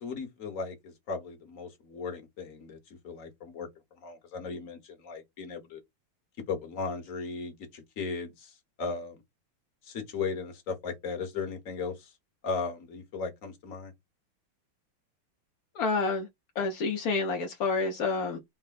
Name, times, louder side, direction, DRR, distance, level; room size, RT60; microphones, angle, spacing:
voice 1, 0.0-2.8 3.0-3.7 4.0-5.8 6.5-8.5 8.8-9.2 9.9-12.1 12.4-13.9, left 4 dB, 45° left, 1.3 m, -36 dB
voice 2, 15.7-16.3 16.6-18.4, left 4 dB, 65° left, 0.9 m, -28 dB
4.1 x 2.1 x 3.9 m
omnidirectional pair, 2.4 m